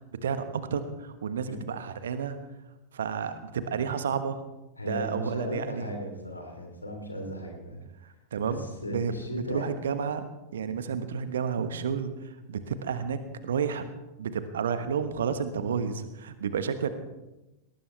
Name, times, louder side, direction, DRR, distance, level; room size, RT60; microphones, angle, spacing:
voice 1, 0.2-2.4 2.9-4.4 4.9-5.9 8.3-10.2 10.5-13.2 13.4-13.9 14.2-16.9, right 6 dB, 65° right, 11 dB, 1.3 m, -31 dB
voice 2, 4.8-7.8 8.4-9.6, equal, 80° left, 3 dB, 3.3 m, -36 dB
19.0 x 18.5 x 3.4 m, 1.0 s
figure-of-eight pair, 90°, 0 cm